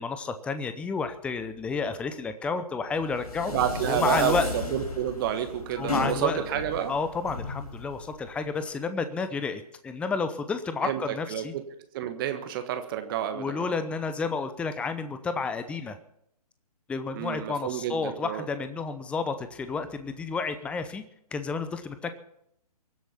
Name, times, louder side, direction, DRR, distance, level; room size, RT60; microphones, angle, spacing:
voice 1, 0.0-3.5 3.9-4.5 5.8-6.4 6.9-11.5 13.3-16.0 16.9-21.0 21.3-22.2, left 4 dB, 5° left, 10 dB, 0.7 m, -31 dB
sound 1, 2.9-8.7, left 3 dB, 75° left, 4.4 m, -35 dB
voice 2, 3.5-6.9 10.8-11.0 11.3-11.6 11.9-13.8 17.1-18.4, right 10 dB, 35° right, 8 dB, 1.4 m, -29 dB
23.5 x 7.9 x 5.7 m, 0.73 s
figure-of-eight pair, 135°, 20 cm